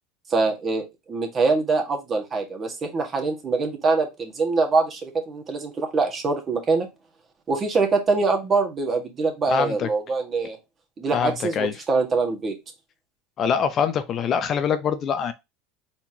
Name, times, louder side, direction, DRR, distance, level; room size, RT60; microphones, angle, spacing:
voice 1, 0.3-6.9 7.5-10.6 11.0-12.6, right 4 dB, 30° right, 1.7 m, -24 dB
voice 2, 9.5-9.9 11.1-11.7 13.4-15.3, left 7 dB, 35° left, 0.5 m, -24 dB
4.4 x 4.3 x 2.8 m
supercardioid pair, 120°, 0 cm